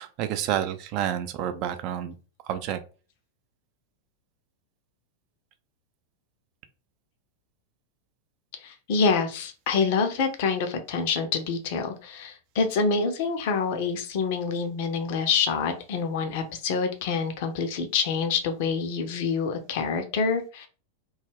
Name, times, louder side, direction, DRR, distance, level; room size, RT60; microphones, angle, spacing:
voice 1, 0.0-2.1 2.4-2.8, right 10 dB, 40° right, 9 dB, 0.4 m, -29 dB
voice 2, 8.6-20.7, left 5 dB, 50° left, 6 dB, 0.5 m, -26 dB
2.3 x 2.1 x 3.3 m, 0.35 s
figure-of-eight pair, 90°, 0 cm